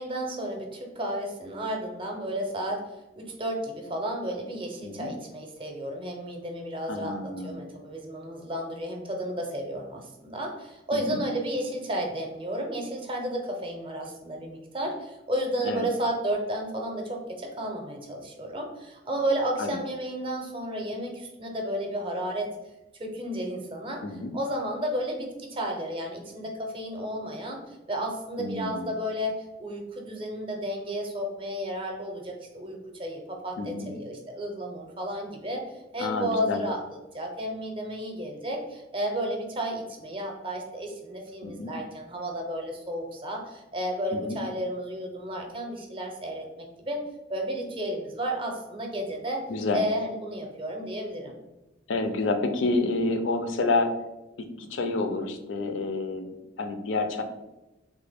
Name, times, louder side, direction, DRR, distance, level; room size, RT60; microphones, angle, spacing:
voice 1, 0.0-2.8 3.2-22.5 23.0-24.0 24.3-35.7 35.9-36.8 37.1-47.0 47.3-49.5 49.7-51.4, equal, 30° right, 1 dB, 0.6 m, -32 dB
voice 2, 6.9-7.6 10.9-11.2 15.6-15.9 19.6-19.8 24.0-24.3 28.4-28.9 33.6-33.9 36.0-36.6 41.4-41.7 44.1-44.4 49.5-49.8 51.9-53.9 54.6-57.2, left 3 dB, 80° left, 7 dB, 0.4 m, -29 dB
3.3 x 2.1 x 3.4 m, 0.99 s
head